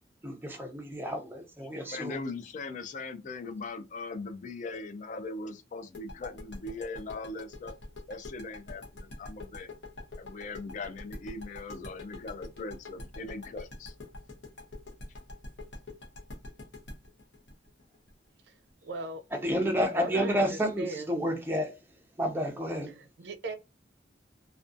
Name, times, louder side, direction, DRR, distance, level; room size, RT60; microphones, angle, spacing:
voice 1, 0.2-2.3 19.4-21.7 22.2-22.9, equal, 15° right, 0.6 m, -30 dB
voice 2, 1.9-7.7 8.1-9.7 10.2-13.9, left 3 dB, 45° left, 0.3 m, -40 dB
sound 1, 5.9-18.7, left 2 dB, 75° left, 0.7 m, -44 dB
voice 3, 18.8-19.2 19.8-21.1 22.9-23.6, right 2 dB, 65° right, 0.4 m, -38 dB
2.5 x 2.2 x 2.5 m
head